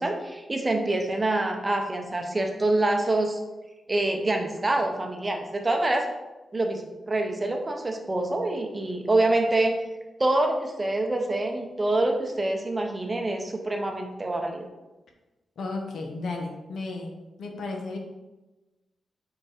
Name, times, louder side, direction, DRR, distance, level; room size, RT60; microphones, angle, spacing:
voice 1, 0.0-3.4 3.9-6.1 6.5-9.8 10.2-14.6, right 2 dB, 20° right, 3 dB, 0.6 m, -26 dB
voice 2, 15.6-17.1 17.4-18.0, left 3 dB, 75° left, 2 dB, 1.1 m, -33 dB
5.1 x 4.7 x 4.9 m, 1.1 s
wide cardioid pair, 180°, 0 cm